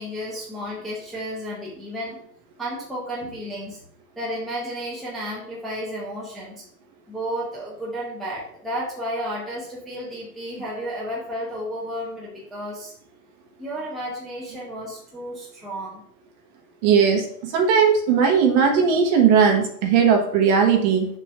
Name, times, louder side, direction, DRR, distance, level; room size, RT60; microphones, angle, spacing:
voice 1, 0.0-2.2 2.6-3.8 4.2-6.6 7.1-12.9 13.6-16.0, equal, ahead, -7 dB, 0.9 m, -32 dB
voice 2, 16.8-17.3 17.5-21.1, right 6 dB, 25° right, 2 dB, 1.2 m, -18 dB
6.6 x 3.0 x 5.8 m, 0.64 s
figure-of-eight pair, 120°, 50 cm